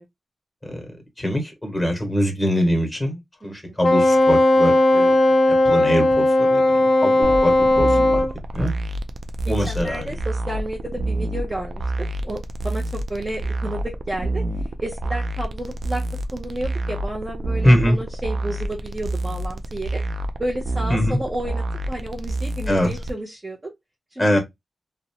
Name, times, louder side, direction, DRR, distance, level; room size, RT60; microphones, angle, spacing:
voice 1, 1.2-5.2 5.5-8.3 8.5-8.7 9.5-10.2 17.6-18.0 20.9-21.2 22.7-22.9 24.2-24.4, equal, 10° left, 1.1 m, -23 dB
voice 2, 3.4-3.7 7.1-7.2 9.5-11.8 12.2-14.5 14.8-16.0 16.3-20.0 20.4-23.7 24.1-24.4, right 1 dB, 25° right, 0.6 m, -31 dB
Wind instrument woodwind instrument, 3.8-8.3, left 1 dB, 60° left, 0.5 m, -16 dB
sound 1, 7.2-23.1, right 1 dB, 75° right, 0.3 m, -28 dB
2.6 x 2.1 x 2.7 m
wide cardioid pair, 85°, 0 cm